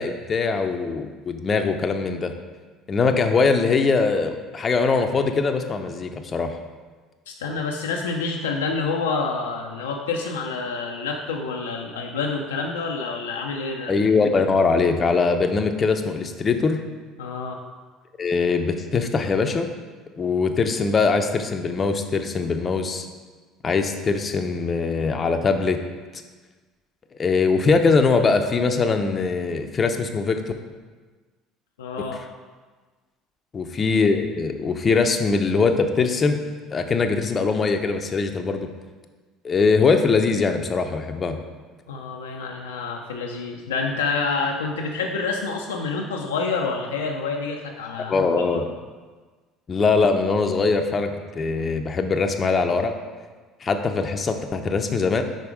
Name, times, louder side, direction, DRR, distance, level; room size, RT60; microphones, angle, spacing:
voice 1, 0.0-2.3 2.9-6.5 13.9-16.8 18.2-19.7 20.2-23.1 23.6-25.8 27.2-30.4 33.5-36.4 36.7-38.7 39.4-41.4 48.1-48.6 49.7-52.9 53.6-55.2, left 4 dB, 35° left, 6 dB, 0.6 m, -22 dB
voice 2, 7.3-13.9 17.2-17.6 31.8-32.2 41.9-48.1 48.5-48.7, left 4 dB, 85° left, 1 dB, 0.4 m, -28 dB
5.2 x 4.1 x 4.7 m, 1.4 s
hypercardioid pair, 65°, 0 cm